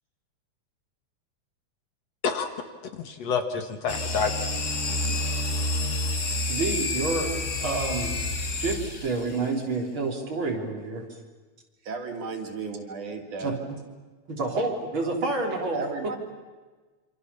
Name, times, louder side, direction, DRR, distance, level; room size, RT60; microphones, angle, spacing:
voice 1, 2.9-4.3, left 5 dB, 60° left, 7 dB, 2.6 m, -28 dB
sound 1, 3.9-9.4, left 2 dB, 35° left, 1.4 m, -29 dB
voice 2, 6.5-8.1 8.6-11.0 13.4-13.6 14.3-16.1, right 3 dB, 40° right, 0 dB, 4.4 m, -29 dB
voice 3, 11.8-13.6 15.7-16.2, right 4 dB, 75° right, 3 dB, 4.2 m, -34 dB
27.0 x 26.0 x 7.1 m, 1.3 s
omnidirectional pair, 3.5 m